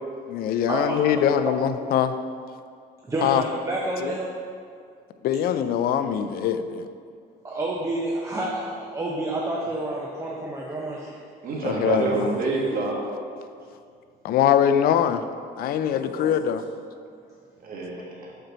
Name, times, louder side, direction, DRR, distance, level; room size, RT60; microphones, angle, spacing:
voice 1, 0.3-2.1 3.2-3.4 4.0-4.1 5.2-6.9 11.6-12.4 14.2-15.2 15.6-16.6, left 9 dB, 65° left, 10 dB, 0.4 m, -23 dB
voice 2, 3.1-4.3 7.4-11.2, right 2 dB, 15° right, -3 dB, 0.7 m, -29 dB
voice 3, 11.4-13.0 15.8-16.3 17.6-18.3, right 3 dB, 60° right, -3 dB, 1.4 m, -28 dB
6.8 x 4.3 x 3.9 m, 2.2 s
cardioid pair, 110°, 17 cm